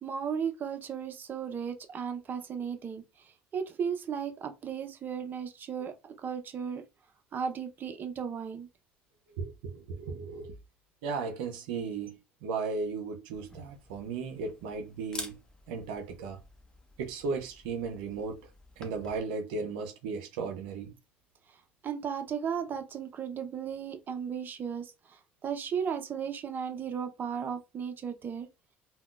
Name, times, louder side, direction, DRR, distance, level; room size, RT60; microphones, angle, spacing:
voice 1, 0.0-3.0 3.5-6.8 7.3-8.7 21.8-28.5, right 7 dB, 40° right, 0.7 m, -35 dB
voice 2, 9.3-10.5 11.0-15.4 15.7-16.4 17.0-18.4 18.8-20.9, right 4 dB, 85° right, 0.6 m, -36 dB
Camera, 13.3-19.2, left 1 dB, 15° left, 0.9 m, -48 dB
3.5 x 2.2 x 2.4 m
supercardioid pair, 85°, 5 cm